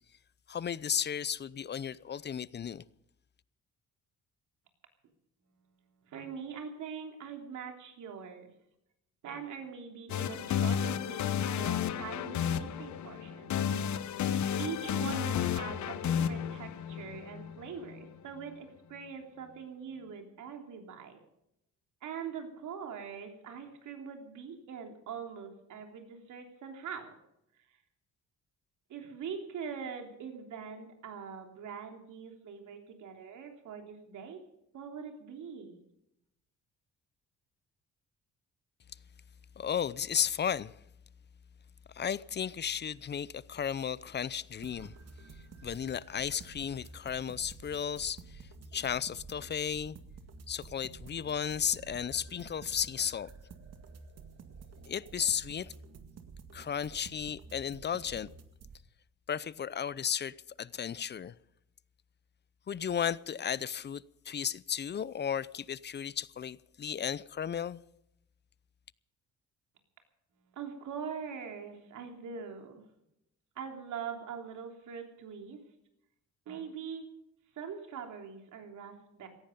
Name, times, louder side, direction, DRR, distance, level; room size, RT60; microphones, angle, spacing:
voice 1, 0.5-2.8 39.6-40.7 41.9-44.9 45.6-48.4 48.7-50.0 50.5-53.3 54.9-55.7 56.5-58.3 59.3-61.3 62.7-67.8, left 8 dB, 35° left, 0.6 m, -34 dB
voice 2, 6.1-8.5 9.2-13.5 14.6-21.2 22.0-27.1 28.9-34.4 34.7-35.7 70.5-72.8 73.5-75.6 76.5-77.1 77.5-79.3, right 6 dB, 75° right, 3.3 m, -43 dB
sound 1, 10.1-18.0, left 9 dB, 70° left, 1.0 m, -32 dB
sound 2, 44.6-58.8, right 5 dB, 55° right, 1.9 m, -51 dB
17.5 x 14.5 x 5.3 m
cardioid pair, 90°, 30 cm